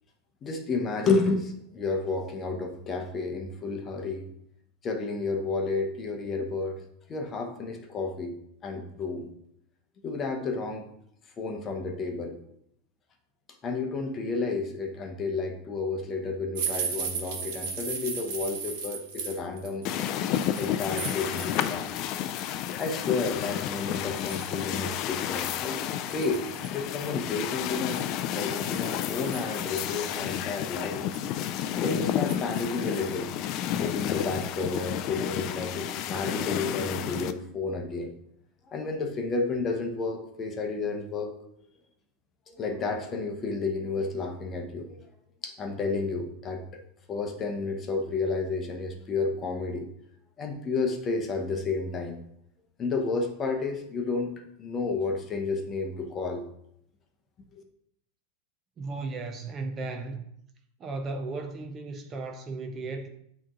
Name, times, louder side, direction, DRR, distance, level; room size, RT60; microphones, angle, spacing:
voice 1, 0.4-4.3 4.8-6.8 7.1-8.4 8.6-9.3 10.0-10.9 11.4-12.4 13.6-19.8 20.6-21.9 22.8-28.0 28.3-31.0 31.8-33.3 33.8-38.1 38.7-41.3 42.5-45.0 45.4-49.9 50.4-52.2 52.8-54.3 54.6-56.4 57.5-57.6, left 3 dB, 25° left, 0.8 m, -31 dB
sound 1, 16.5-21.9 22.2-22.8 23.4-23.5 23.9-24.6 25.1-25.2 25.5-25.6 26.1-26.8 27.8-29.8 30.4-30.5 30.8-31.4 32.3-32.6 32.9-33.2 33.5-33.6, right 6 dB, 60° right, 1.3 m, -36 dB
sound 2, 19.9-37.3, left 11 dB, 40° left, 0.3 m, -31 dB
voice 2, 58.8-60.2 60.8-63.1, right 3 dB, 25° right, 0.5 m, -35 dB
8.6 x 3.0 x 3.7 m
supercardioid pair, 150°, 0 cm